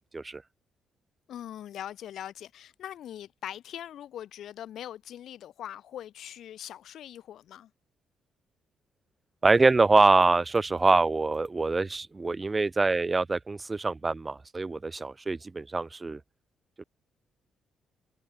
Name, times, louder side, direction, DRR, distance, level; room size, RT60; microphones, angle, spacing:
voice 1, 1.3-7.7, left 11 dB, 70° left, 4.0 m, -41 dB
voice 2, 9.4-16.2, right 3 dB, 25° right, 0.7 m, -24 dB
cardioid pair, 90°, 0 cm